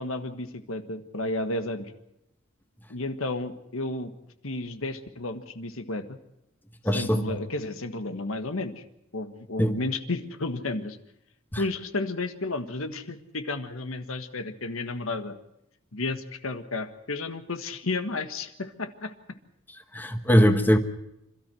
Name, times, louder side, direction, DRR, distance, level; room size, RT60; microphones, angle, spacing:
voice 1, 0.0-1.9 2.9-4.1 4.4-6.2 6.9-8.8 9.1-11.0 11.6-15.3 15.9-19.1, left 2 dB, 85° left, 8 dB, 1.6 m, -32 dB
voice 2, 6.8-7.2 9.6-9.7 11.5-11.6 19.9-20.8, equal, 10° left, 7 dB, 1.3 m, -21 dB
27.0 x 13.0 x 7.7 m, 0.86 s
head